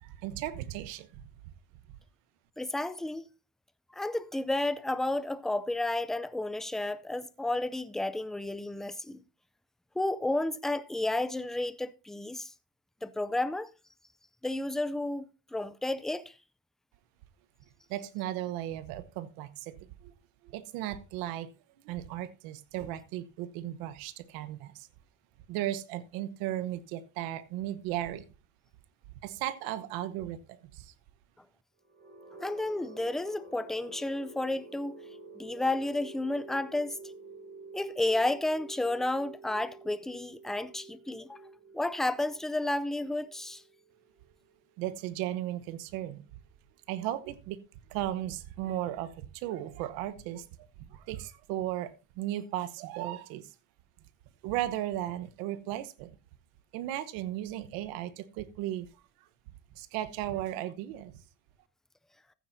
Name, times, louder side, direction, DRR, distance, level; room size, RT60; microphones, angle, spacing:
voice 1, 0.0-1.2 17.9-19.7 20.0-20.1 20.4-21.5 21.8-24.9 25.5-28.2 29.2-30.9 44.8-46.2 46.9-47.6 47.9-53.5 54.4-56.1 56.7-58.9 59.8-61.1, right 13 dB, 85° right, 1.1 m, -36 dB
voice 2, 2.6-3.3 3.9-9.2 10.0-12.5 13.0-13.7 14.4-16.3 32.4-34.9 35.4-37.0 37.7-41.4 41.7-43.6, left 2 dB, ahead, 0.4 m, -32 dB
sound 1, 31.8-45.7, right 3 dB, 25° right, 6.1 m, -49 dB
14.5 x 9.3 x 2.7 m
cardioid pair, 125°, 34 cm